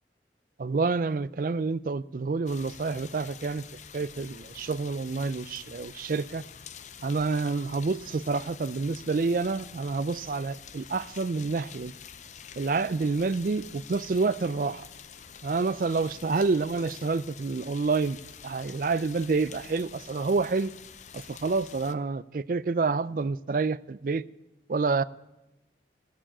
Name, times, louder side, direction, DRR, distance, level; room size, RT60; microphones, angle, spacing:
voice 1, 0.6-3.6 3.9-6.4 7.0-11.9 12.6-14.9 15.4-18.2 18.4-20.7 21.1-24.2 24.7-25.0, right 4 dB, 50° right, 0.4 m, -28 dB
sound 1, 2.5-21.9, left 7 dB, 40° left, 0.6 m, -47 dB
15.0 x 7.3 x 8.7 m
head